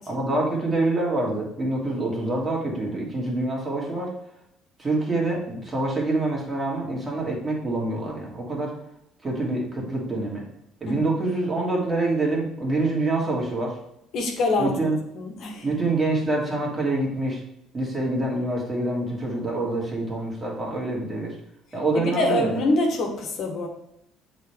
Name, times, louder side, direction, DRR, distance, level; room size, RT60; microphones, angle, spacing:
voice 1, 0.1-4.1 4.8-8.7 9.2-10.4 10.8-13.7 14.6-15.0 15.6-17.4 17.7-21.3 21.7-22.5, right 2 dB, 30° right, -3 dB, 2.6 m, -26 dB
voice 2, 14.1-14.7 15.1-15.7 21.9-23.7, left 2 dB, 60° left, 1 dB, 1.5 m, -24 dB
7.9 x 4.2 x 3.5 m, 0.80 s
hypercardioid pair, 60°, 0 cm